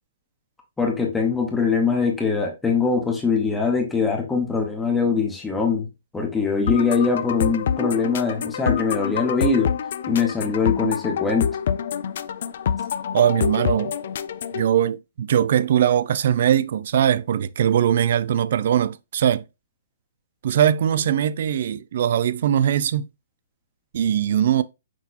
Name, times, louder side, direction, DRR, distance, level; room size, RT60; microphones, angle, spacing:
voice 1, 0.8-5.9 6.1-9.7 10.1-11.5, left 5 dB, 5° left, 0.8 m, -22 dB
sound 1, 6.7-14.7, left 8 dB, 55° left, 0.3 m, -26 dB
voice 2, 13.1-13.9 14.5-19.4 20.4-23.1 23.9-24.6, right 10 dB, 55° right, 0.3 m, -21 dB
6.0 x 2.8 x 2.4 m
hypercardioid pair, 160°, 0 cm